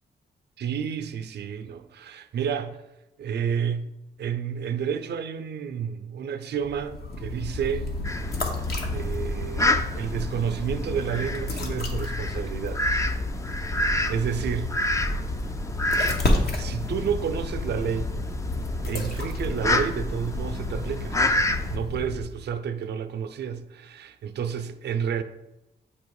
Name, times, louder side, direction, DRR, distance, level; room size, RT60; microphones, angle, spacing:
voice 1, 0.6-2.8 3.2-3.9 4.2-7.9 8.8-12.8 13.5-14.7 16.6-18.1 18.9-21.2 21.7-25.2, right 7 dB, 75° right, 0.5 m, -30 dB
sound 1, 6.6-22.5, left 2 dB, 65° left, 1.0 m, -30 dB
Fowl, 8.0-21.8, left 1 dB, 20° left, 0.4 m, -30 dB
8.5 x 2.9 x 4.6 m
wide cardioid pair, 130°, 17 cm